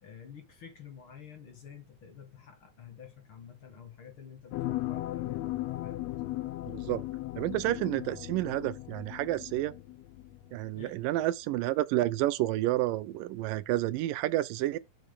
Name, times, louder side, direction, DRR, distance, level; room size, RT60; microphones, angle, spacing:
voice 1, 0.0-6.4 10.7-10.9, left 8 dB, 45° left, 2.4 m, -50 dB
sound 1, 4.5-10.6 11.0-11.1, left 16 dB, 85° left, 1.5 m, -37 dB
voice 2, 6.7-7.0 7.4-9.7 10.5-14.8, right 15 dB, 85° right, 2.4 m, -30 dB
10.5 x 5.9 x 5.4 m
omnidirectional pair, 3.9 m